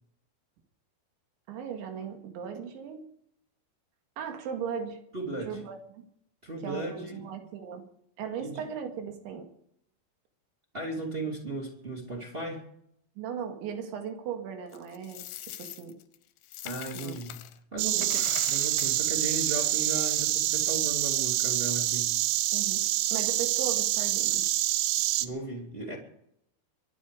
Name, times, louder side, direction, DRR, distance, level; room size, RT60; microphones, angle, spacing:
voice 1, 1.5-3.0 4.2-5.0 5.5-6.1 6.6-7.8 8.2-9.5 13.2-16.0 16.9-17.1 17.9-18.1 22.5-22.8 23.1-24.4, right 7 dB, 70° right, 4 dB, 4.3 m, -37 dB
voice 2, 5.1-5.6 6.4-7.2 8.4-8.6 10.7-12.6 16.6-17.5 17.7-22.2 25.2-26.0, right 2 dB, 20° right, 1 dB, 1.9 m, -36 dB
Coin (dropping), 14.7-17.6 17.9-20.2, left 13 dB, 75° left, 2.7 m, -43 dB
Insect, 17.8-25.3, right 15 dB, 90° right, 3.3 m, -27 dB
24.0 x 10.0 x 5.1 m, 0.72 s
omnidirectional pair, 5.5 m